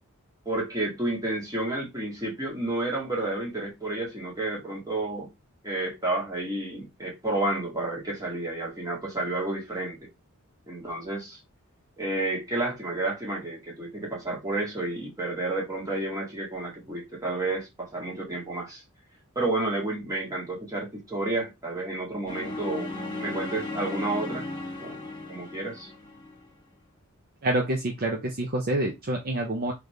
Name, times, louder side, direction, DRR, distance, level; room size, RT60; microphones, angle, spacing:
voice 1, 0.5-5.3 5.6-10.1 10.7-11.4 12.0-18.8 19.4-24.5 24.8-25.9, right 2 dB, 15° right, 1.8 m, -31 dB
sound 1, 22.3-26.4, left 2 dB, 20° left, 1.9 m, -35 dB
voice 2, 27.4-29.7, right 1 dB, 45° right, 0.7 m, -27 dB
4.0 x 3.3 x 3.2 m
head